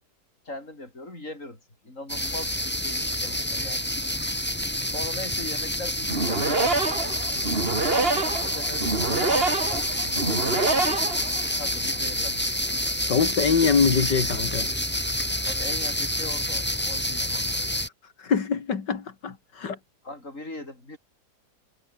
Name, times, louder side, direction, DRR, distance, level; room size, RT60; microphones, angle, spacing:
voice 1, 0.4-3.9 4.9-7.2 7.8-10.7 11.6-12.5 13.2-13.6 15.4-17.6 20.0-21.0, left 2 dB, 45° left, 8.0 m, -40 dB
sound 1, 2.1-17.9, left 1 dB, 5° left, 2.9 m, -28 dB
sound 2, 6.0-11.7, right 3 dB, 35° right, 2.7 m, -26 dB
voice 2, 13.1-14.7 18.2-19.8, left 5 dB, 85° left, 3.0 m, -24 dB
omnidirectional pair, 1.8 m